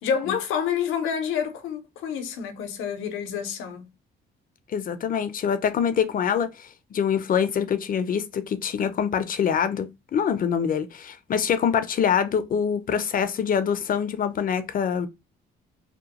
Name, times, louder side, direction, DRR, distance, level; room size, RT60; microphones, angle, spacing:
voice 1, 0.0-3.9, left 7 dB, 90° left, 0.6 m, -28 dB
voice 2, 4.7-15.1, left 7 dB, 45° left, 0.5 m, -25 dB
2.8 x 2.1 x 2.9 m
cardioid pair, 90°, 20 cm